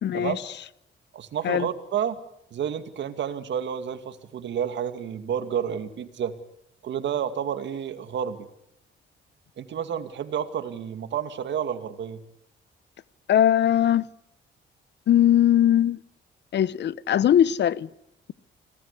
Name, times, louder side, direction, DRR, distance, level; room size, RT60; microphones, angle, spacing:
voice 1, 0.0-0.4 1.4-1.7 13.3-14.1 15.1-16.0 16.5-17.9, left 10 dB, 60° left, 0.8 m, -20 dB
voice 2, 1.1-2.2 2.5-6.3 6.8-8.5 9.6-12.2, right 8 dB, 65° right, 2.3 m, -30 dB
26.0 x 18.5 x 8.4 m
cardioid pair, 90°, 20 cm